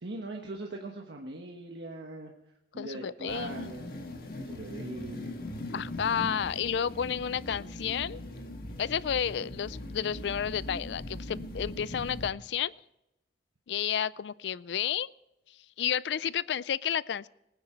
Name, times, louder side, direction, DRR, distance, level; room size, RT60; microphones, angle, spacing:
voice 1, 0.0-2.3 2.7-5.4, right 2 dB, 70° right, 1 dB, 1.3 m, -41 dB
voice 2, 2.8-3.7 5.7-8.2 8.8-12.7 13.7-15.1 15.8-17.3, left 8 dB, 75° left, 20 dB, 0.4 m, -31 dB
sound 1, 3.3-12.3, left 1 dB, 50° left, 1.7 m, -40 dB
19.5 x 9.8 x 4.4 m, 0.89 s
head